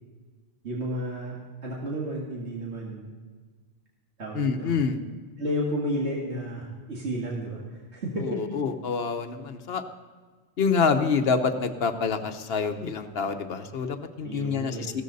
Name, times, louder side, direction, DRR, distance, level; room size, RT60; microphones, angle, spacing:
voice 1, 0.6-3.1 4.2-4.7 5.4-8.3 14.2-14.9, equal, 85° right, -4 dB, 2.3 m, -32 dB
voice 2, 4.3-5.0 8.2-9.8 10.6-15.0, left 5 dB, 65° left, 8 dB, 1.1 m, -27 dB
15.5 x 13.0 x 4.1 m, 1.4 s
omnidirectional pair, 1.1 m